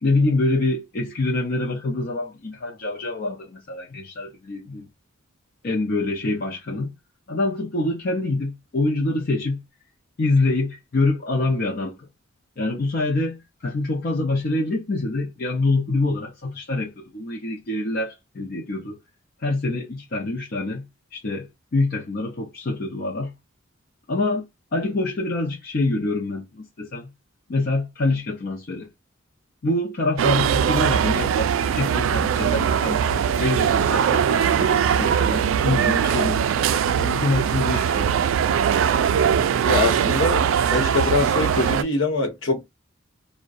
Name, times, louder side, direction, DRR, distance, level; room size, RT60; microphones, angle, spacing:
voice 1, 0.0-4.9 5.6-6.9 7.3-9.6 10.2-12.1 12.6-19.0 19.4-23.3 24.1-24.5 24.7-27.1 27.5-28.9 29.6-36.7 37.0-38.1, left 2 dB, 50° left, 0.5 m, -25 dB
sound 1, 30.2-41.8, right 8 dB, 75° right, 0.3 m, -21 dB
voice 2, 39.6-42.7, left 3 dB, 65° left, 1.0 m, -23 dB
2.6 x 2.1 x 2.3 m
head